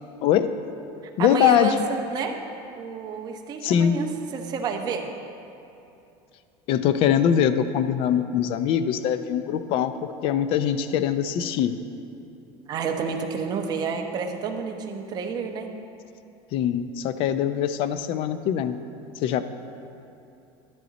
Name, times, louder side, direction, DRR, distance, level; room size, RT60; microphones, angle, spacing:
voice 1, 0.2-0.5 1.2-1.7 3.6-4.0 6.7-9.9 10.2-11.8 16.5-18.8 19.2-19.4, left 9 dB, 45° left, 11 dB, 0.5 m, -22 dB
voice 2, 1.2-2.4 2.8-5.1 12.7-15.7, right 5 dB, 30° right, 2 dB, 1.0 m, -29 dB
12.5 x 10.5 x 4.1 m, 2.7 s
cardioid pair, 160°, 13 cm